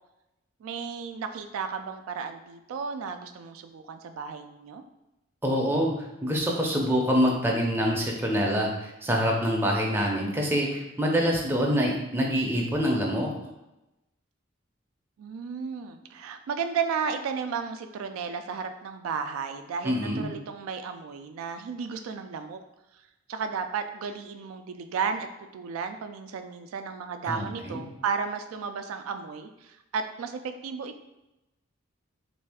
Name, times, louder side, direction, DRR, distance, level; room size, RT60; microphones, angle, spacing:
voice 1, 0.6-4.8 15.2-22.6 23.3-25.3 25.5-31.0, right 6 dB, 90° right, 9 dB, 0.3 m, -33 dB
voice 2, 5.4-5.9 6.2-13.3 19.8-20.3 27.2-27.8, equal, 10° right, -1 dB, 0.4 m, -25 dB
3.2 x 2.6 x 3.4 m, 0.95 s
head